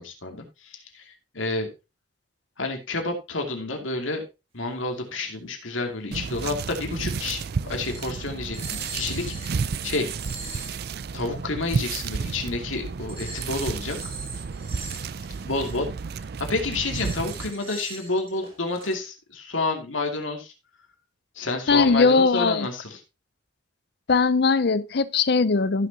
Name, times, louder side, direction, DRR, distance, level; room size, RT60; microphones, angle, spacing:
voice 1, 0.0-1.7 2.6-4.2 4.5-10.1 11.1-14.1 15.4-15.9 16.4-20.5 21.4-23.0, left 2 dB, 85° left, 2.5 m, -30 dB
sound 1, 6.1-17.5, right 5 dB, 55° right, 0.4 m, -32 dB
sound 2, 7.8-8.2 8.5-9.6 10.0-10.8 13.1-15.8 16.4-18.9, right 3 dB, 30° right, 2.9 m, -41 dB
voice 2, 21.7-22.7 24.1-25.9, left 4 dB, 55° left, 0.6 m, -20 dB
15.5 x 6.5 x 2.8 m
head